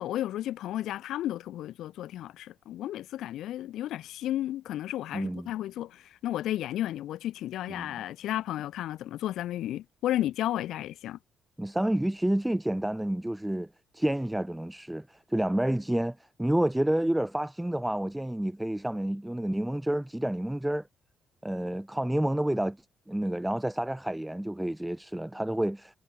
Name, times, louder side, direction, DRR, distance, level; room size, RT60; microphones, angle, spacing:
voice 1, 0.0-11.2, left 13 dB, 80° left, 1.1 m, -33 dB
voice 2, 5.1-5.5 7.7-7.9 11.6-13.7 13.9-20.9 21.4-22.8 23.1-26.0, right 1 dB, 5° right, 0.6 m, -29 dB
cardioid pair, 90°, 0 cm